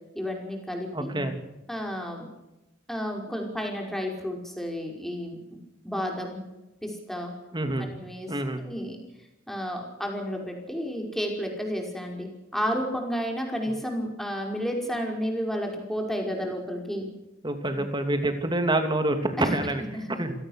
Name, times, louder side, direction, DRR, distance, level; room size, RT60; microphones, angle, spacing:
voice 1, 0.1-1.1 1.7-2.3 2.9-5.4 5.8-6.4 6.8-7.3 7.8-9.0 9.5-17.1 19.4-19.6 19.9-20.2, equal, ahead, 1 dB, 5.4 m, -31 dB
voice 2, 0.9-1.3 7.5-7.9 8.3-8.6 17.4-19.8 20.2-20.3, right 1 dB, 25° right, 7 dB, 2.9 m, -27 dB
27.0 x 17.5 x 6.6 m, 0.98 s
head